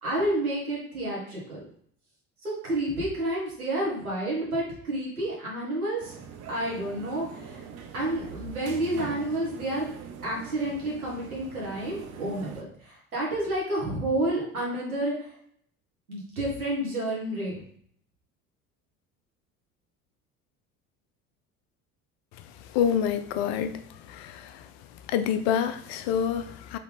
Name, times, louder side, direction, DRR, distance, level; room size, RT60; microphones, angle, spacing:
voice 1, 0.0-1.6 2.4-6.2 6.5-7.6 7.9-9.8 10.2-15.3 16.1-17.6, right 1 dB, 85° right, -5 dB, 1.4 m, -30 dB
sound 1, 6.0-12.6, right 6 dB, 40° right, 0.6 m, -42 dB
voice 2, 22.7-24.6 25.1-26.8, left 8 dB, 50° left, 10 dB, 0.5 m, -27 dB
3.7 x 3.0 x 3.4 m, 0.63 s
figure-of-eight pair, 65°, 42 cm